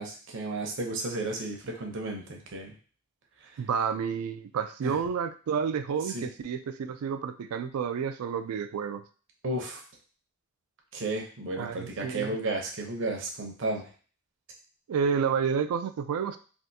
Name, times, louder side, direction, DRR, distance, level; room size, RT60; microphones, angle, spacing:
voice 1, 0.0-2.7 3.4-3.6 4.8-5.0 6.1-6.3 9.4-9.8 10.9-13.9, right 2 dB, 60° right, 2 dB, 0.7 m, -33 dB
voice 2, 3.6-9.0 11.6-12.4 14.9-16.4, right 6 dB, 80° right, 10 dB, 0.3 m, -30 dB
3.4 x 2.5 x 2.7 m, 0.39 s
head